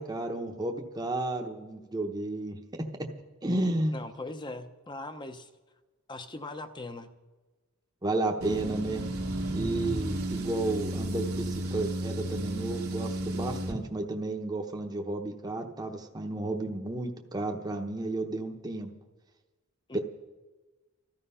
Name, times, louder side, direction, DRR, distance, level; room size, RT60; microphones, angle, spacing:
voice 1, 0.0-2.9 3.4-4.0 8.0-9.0 9.5-18.9 19.9-20.0, right 2 dB, 20° right, 2 dB, 0.9 m, -32 dB
voice 2, 3.9-5.5 6.1-7.1 19.9-20.0, left 2 dB, 20° left, 9 dB, 0.8 m, -40 dB
sound 1, 8.4-13.8, right 1 dB, 85° right, 1.7 m, -33 dB
14.5 x 13.5 x 5.6 m, 1.3 s
head